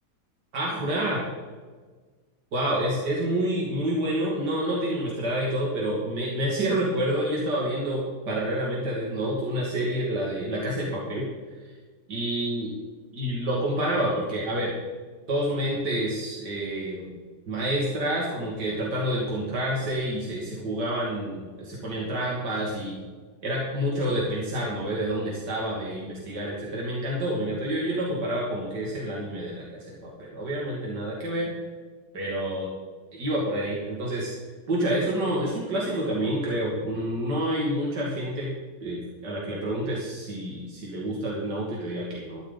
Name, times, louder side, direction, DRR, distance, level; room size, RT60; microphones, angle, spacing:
voice 1, 0.5-1.2 2.5-11.3 12.1-12.7 13.1-14.7 15.3-17.1 17.5-23.0 23.4-31.5 32.1-32.7 33.1-34.3 34.7-38.5 38.8-42.4, right 1 dB, 85° right, -4 dB, 3.0 m, -28 dB
13.0 x 11.5 x 4.1 m, 1.4 s
omnidirectional pair, 1.8 m